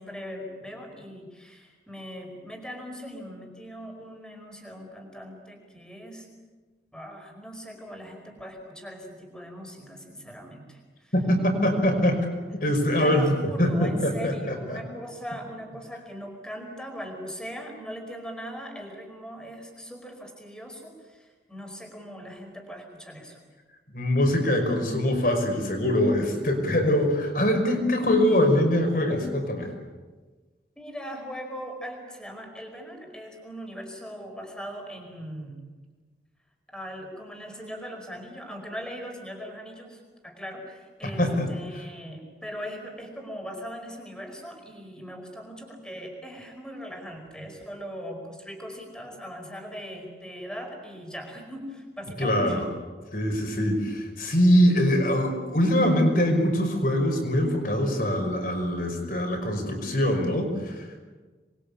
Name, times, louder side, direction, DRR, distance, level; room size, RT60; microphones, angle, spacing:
voice 1, 0.0-6.3 6.9-11.1 13.0-23.4 30.8-35.6 36.7-52.6, equal, 5° left, 2 dB, 5.1 m, -40 dB
voice 2, 11.1-12.3 12.5-13.3 13.6-14.8 23.9-29.7 41.0-41.5 52.2-52.6 53.1-61.0, left 1 dB, 50° left, 4 dB, 5.8 m, -23 dB
27.0 x 22.5 x 8.6 m, 1.3 s
head